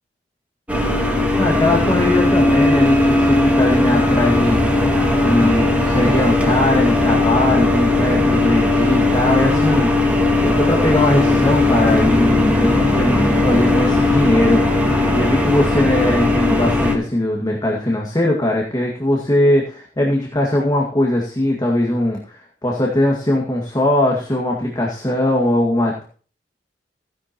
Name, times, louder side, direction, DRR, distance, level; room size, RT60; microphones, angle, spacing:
sound 1, 0.7-16.9, left 2 dB, 10° right, 2.2 m, -17 dB
voice 1, 1.4-4.6 5.2-9.9 10.4-14.6 15.1-26.0, left 1 dB, 20° left, -2 dB, 2.1 m, -20 dB
16.0 x 10.5 x 3.0 m, 0.41 s
head